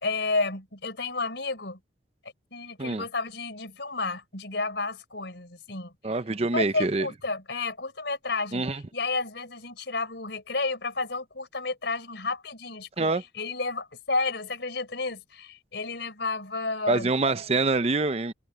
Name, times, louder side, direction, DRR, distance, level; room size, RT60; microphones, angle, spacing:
voice 1, 0.0-1.8 2.5-5.9 6.5-17.1, left 3 dB, 65° left, 4.3 m, -31 dB
voice 2, 6.0-7.1 8.5-8.8 13.0-13.2 16.9-18.3, right 3 dB, 35° right, 0.6 m, -25 dB
head